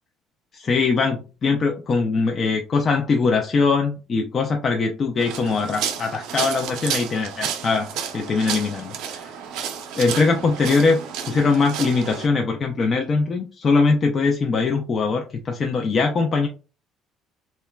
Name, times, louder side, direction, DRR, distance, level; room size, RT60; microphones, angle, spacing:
voice 1, 0.5-9.3 9.9-11.0 11.3-16.5, left 4 dB, 40° left, 4 dB, 0.3 m, -21 dB
sound 1, 5.2-12.3, right 8 dB, 80° right, 0.5 m, -31 dB
2.9 x 2.2 x 2.2 m, 0.34 s
cardioid pair, 110°, 0 cm